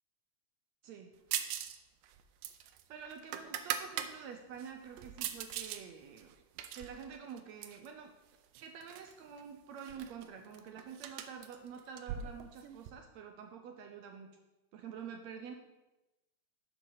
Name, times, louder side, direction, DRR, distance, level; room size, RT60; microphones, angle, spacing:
voice 1, 0.8-1.1 2.9-6.3 6.7-8.1 8.6-14.3 14.7-15.5, right 7 dB, 75° right, 4 dB, 1.8 m, -48 dB
sound 1, 1.3-1.8 2.0-4.1 4.6-5.8 6.2-7.9 8.6-9.1 9.4-9.5 9.8-12.9, right 10 dB, 90° right, 2.3 m, -40 dB
11.5 x 7.3 x 4.0 m, 1.0 s
omnidirectional pair, 3.6 m